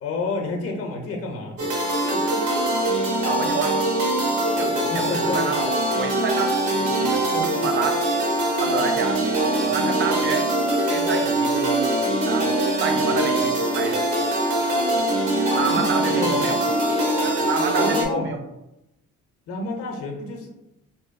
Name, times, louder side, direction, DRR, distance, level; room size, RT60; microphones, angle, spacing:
voice 1, 0.0-2.5 4.9-5.5 15.7-16.5 17.7-18.4 19.5-20.5, left 3 dB, 50° left, 1 dB, 0.6 m, -30 dB
sound 1, 1.6-18.1, right 1 dB, 80° right, 0.8 m, -22 dB
voice 2, 3.2-3.8 4.6-8.0 8.6-9.2 9.5-10.5 10.9-11.9 12.2-12.5 12.8-14.2 15.5-16.6 17.2-18.4, right 5 dB, 40° right, 6 dB, 0.4 m, -28 dB
2.6 x 2.2 x 2.5 m, 0.89 s
cardioid pair, 90°, 30 cm